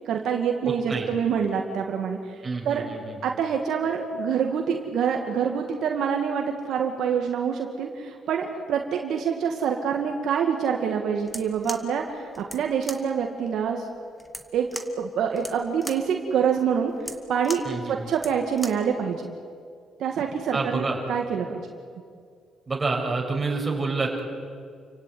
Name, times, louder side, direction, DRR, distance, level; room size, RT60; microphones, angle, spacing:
voice 1, 0.1-2.2 2.6-2.9 3.2-13.8 14.5-14.7 15.0-16.9 17.3-19.3 20.0-21.6, right 7 dB, 75° right, 2 dB, 2.2 m, -26 dB
voice 2, 0.9-1.2 2.4-3.2 17.6-18.1 20.5-21.0 22.7-24.2, right 3 dB, 25° right, 0 dB, 6.6 m, -28 dB
sound 1, 11.2-18.9, equal, ahead, 2.2 m, -40 dB
29.5 x 16.5 x 9.5 m, 2.2 s
cardioid pair, 90°, 0 cm